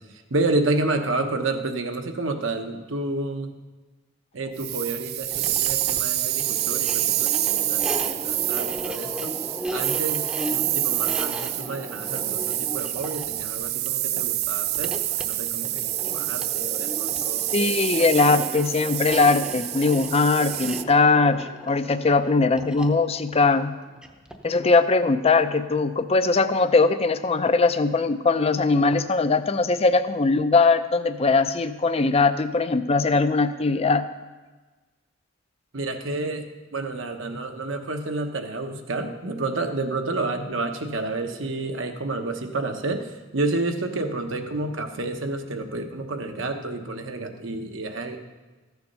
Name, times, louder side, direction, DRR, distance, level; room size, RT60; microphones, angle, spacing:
voice 1, 0.3-3.5 4.3-9.4 9.7-17.5 35.7-36.4 36.7-48.2, right 2 dB, 70° right, 5 dB, 1.0 m, -30 dB
sound 1, 4.6-20.8, right 14 dB, 50° right, 0.4 m, -27 dB
sound 2, 5.3-24.5, equal, 5° right, 0.7 m, -36 dB
voice 2, 17.5-23.7 24.4-34.0, left 3 dB, 30° left, 11 dB, 0.5 m, -20 dB
14.0 x 7.0 x 5.5 m, 1.2 s
head